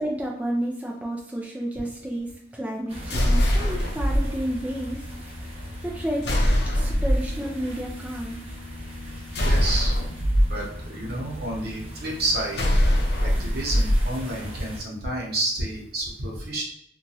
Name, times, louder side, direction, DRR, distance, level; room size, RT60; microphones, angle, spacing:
voice 1, 0.0-5.4 5.8-6.3 6.7-8.4, right 1 dB, 10° right, -2 dB, 0.3 m, -31 dB
sound 1, 2.9-14.8, equal, 35° right, 1.0 m, -38 dB
sound 2, 3.1-4.2 6.2-7.3 9.3-10.4 12.5-14.0, equal, 65° left, 0.6 m, -21 dB
voice 2, 9.1-10.0 10.5-12.7 13.2-16.6, right 1 dB, 60° right, -3 dB, 0.8 m, -30 dB
2.9 x 2.3 x 2.7 m, 0.71 s
head